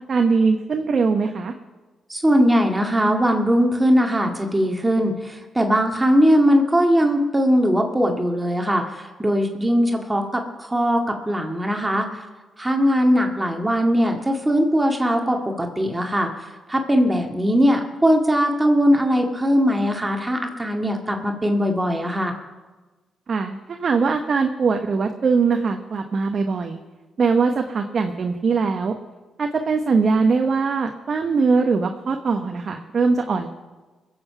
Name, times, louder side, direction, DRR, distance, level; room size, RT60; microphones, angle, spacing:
voice 1, 0.1-1.5 23.3-26.8 27.2-28.9 29.4-33.5, right 4 dB, 55° right, 5 dB, 1.0 m, -21 dB
voice 2, 2.1-12.2 12.6-22.4, equal, 15° right, 3 dB, 2.0 m, -20 dB
21.0 x 7.9 x 5.8 m, 1.2 s
supercardioid pair, 50°, 0 cm